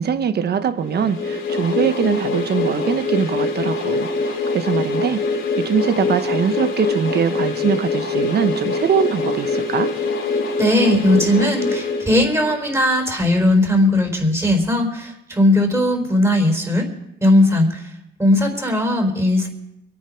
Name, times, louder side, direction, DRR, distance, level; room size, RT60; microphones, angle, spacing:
voice 1, 0.0-5.2 5.6-9.9, right 7 dB, 55° right, 10 dB, 1.2 m, -22 dB
sound 1, 0.9-12.7, left 3 dB, 75° left, 3.4 m, -23 dB
voice 2, 10.6-16.9 17.2-17.9 18.2-19.5, left 1 dB, 15° right, 2 dB, 4.1 m, -18 dB
24.0 x 9.3 x 5.2 m, 0.87 s
cardioid pair, 90°, 20 cm